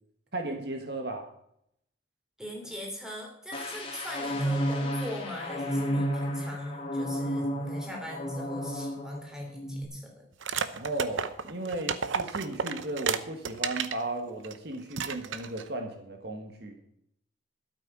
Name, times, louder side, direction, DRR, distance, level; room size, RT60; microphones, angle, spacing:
voice 1, 0.3-1.3 10.7-16.9, right 2 dB, 55° right, 4 dB, 1.7 m, -35 dB
voice 2, 2.4-10.3, left 1 dB, 5° right, 0 dB, 3.2 m, -40 dB
sound 1, 3.5-9.2 9.5-9.8, equal, 30° left, 2.4 m, -32 dB
sound 2, 10.4-14.0 14.4-14.6 14.9-15.7, right 6 dB, 80° right, 0.8 m, -32 dB
12.5 x 8.8 x 6.1 m, 0.73 s
head